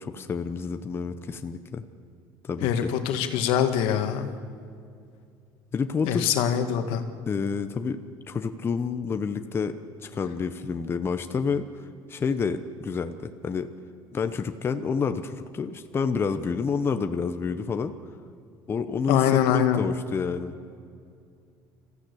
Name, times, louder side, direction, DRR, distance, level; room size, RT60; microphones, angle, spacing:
voice 1, 0.0-1.8 2.4-2.9 5.7-6.4 7.3-8.0 8.3-9.7 10.0-13.7 14.1-17.9 18.7-20.5, left 5 dB, 25° left, 8 dB, 0.9 m, -29 dB
voice 2, 2.6-4.3 6.0-7.0 19.1-19.8, left 9 dB, 75° left, 7 dB, 1.8 m, -24 dB
26.0 x 15.0 x 8.4 m, 2.4 s
cardioid pair, 130°, 9 cm